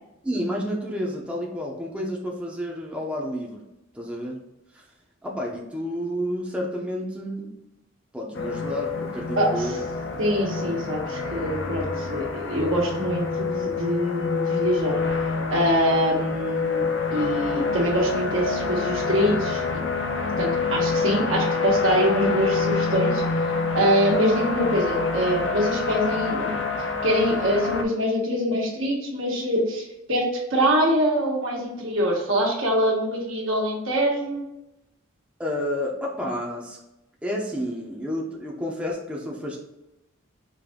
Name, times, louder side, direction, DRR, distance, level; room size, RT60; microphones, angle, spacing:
voice 1, 0.2-3.6 3.9-4.4 4.7-4.8 5.2-7.5 8.1-9.8 35.4-36.8 37.2-39.6, equal, 5° right, -2 dB, 0.6 m, -30 dB
sound 1, 8.3-27.8, left 4 dB, 65° left, 0.7 m, -27 dB
voice 2, 9.4-9.8 10.2-16.8 17.1-19.6 20.4-23.2 23.7-26.5 27.0-30.2 30.5-34.4, equal, 75° right, -2 dB, 1.3 m, -24 dB
5.1 x 2.6 x 3.6 m, 0.93 s
head